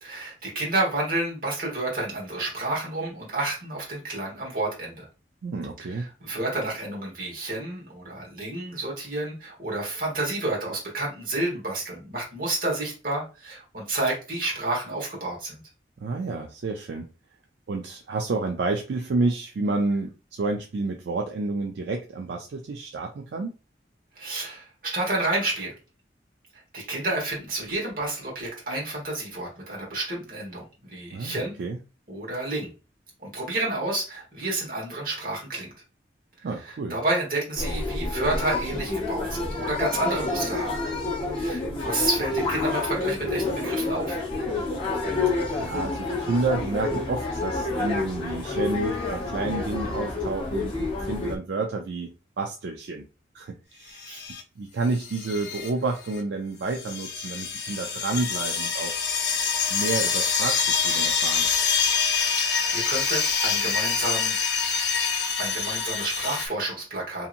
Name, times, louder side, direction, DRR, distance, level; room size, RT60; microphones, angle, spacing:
voice 1, 0.0-5.1 5.8-15.6 24.1-25.7 26.7-31.5 32.1-32.7 33.2-35.7 36.6-40.7 41.3-44.2 54.1-54.2 62.4-64.4 65.4-67.3, right 2 dB, 50° right, -3 dB, 1.3 m, -30 dB
voice 2, 5.4-6.1 16.0-17.1 17.7-23.5 31.1-31.8 36.4-37.0 45.6-53.1 53.3-59.1 59.7-61.5, right 3 dB, 75° right, 3 dB, 0.4 m, -30 dB
sound 1, 37.6-51.4, left 3 dB, 30° left, 0.7 m, -28 dB
sound 2, 54.0-54.4 55.0-55.7 56.1-56.2 56.7-66.5, left 6 dB, 70° left, 0.6 m, -26 dB
2.8 x 2.7 x 2.5 m, 0.32 s
head